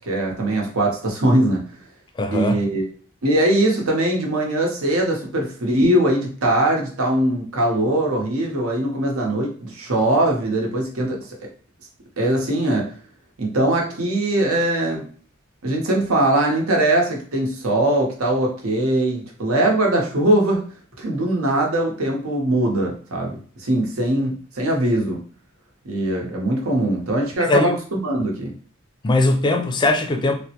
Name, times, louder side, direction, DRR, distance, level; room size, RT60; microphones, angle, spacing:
voice 1, 0.1-1.6 2.3-2.8 3.2-11.2 12.2-12.9 13.4-15.0 15.6-20.6 21.0-25.2 25.8-27.7 28.0-28.5, right 1 dB, 85° right, 0 dB, 0.9 m, -21 dB
voice 2, 2.2-2.6 27.5-27.8 29.0-30.3, left 2 dB, 20° left, 5 dB, 0.4 m, -19 dB
3.4 x 2.1 x 2.8 m, 0.44 s
head